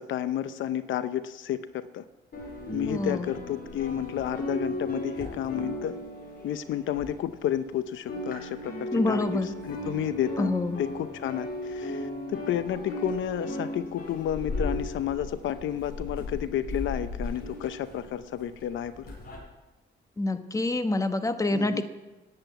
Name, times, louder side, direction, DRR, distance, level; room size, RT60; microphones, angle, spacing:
voice 1, 0.0-2.0 2.7-6.0 6.4-10.5 10.8-19.1 21.5-21.8, left 11 dB, 75° left, 13 dB, 0.7 m, -31 dB
sound 1, 2.3-7.7 7.9-19.4, left 1 dB, 50° left, 4.9 m, -36 dB
voice 2, 2.9-3.3 8.9-9.5 10.4-10.8 20.2-21.8, left 2 dB, 15° left, 9 dB, 1.1 m, -27 dB
10.5 x 7.9 x 9.2 m, 1.1 s
cardioid pair, 90°, 20 cm